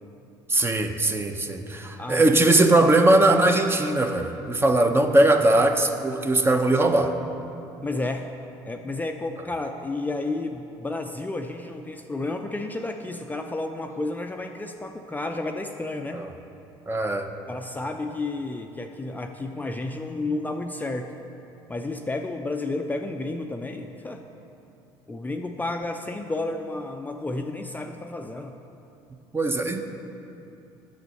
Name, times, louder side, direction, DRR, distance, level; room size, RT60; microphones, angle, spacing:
voice 1, 0.5-7.1 16.1-16.3 16.9-17.3 29.3-29.8, right 2 dB, 20° right, 6 dB, 0.8 m, -20 dB
voice 2, 2.0-2.4 7.8-8.3 8.7-16.3 17.5-21.1 21.7-24.2 25.1-28.5, left 2 dB, 15° left, 4 dB, 0.5 m, -31 dB
8.0 x 6.4 x 6.4 m, 2.8 s
supercardioid pair, 75°, 11 cm